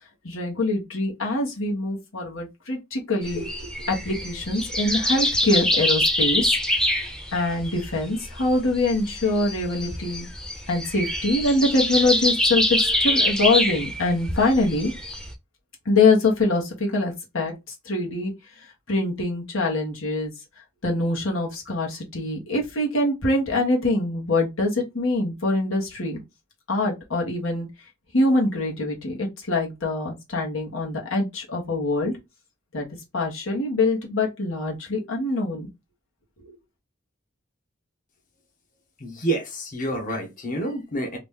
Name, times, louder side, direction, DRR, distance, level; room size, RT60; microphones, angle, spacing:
voice 1, 0.2-10.3 10.7-14.9 15.8-17.5 17.8-18.3 18.9-20.3 20.8-26.2 26.7-27.7 28.1-32.1 32.7-32.9 33.1-35.7 36.4-36.6, left 2 dB, 90° left, 1.3 m, -24 dB
sound 1, 3.2-15.3, left 1 dB, 5° left, 0.6 m, -25 dB
voice 2, 39.0-41.2, right 1 dB, 40° left, 0.9 m, -28 dB
3.0 x 2.5 x 3.6 m
head